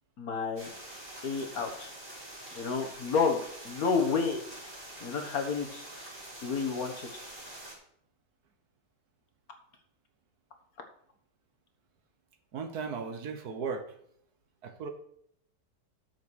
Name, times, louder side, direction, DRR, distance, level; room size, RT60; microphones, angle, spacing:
voice 1, 0.2-0.7 1.2-1.9 2.5-4.4 5.0-5.8 6.4-7.1, left 5 dB, 55° left, 5 dB, 1.7 m, -30 dB
sound 1, 0.6-7.7, right 1 dB, 30° right, 3.3 m, -46 dB
voice 2, 12.5-13.8 14.6-14.9, right 5 dB, 65° right, 8 dB, 1.4 m, -36 dB
8.2 x 6.2 x 6.3 m, 0.68 s
omnidirectional pair, 1.9 m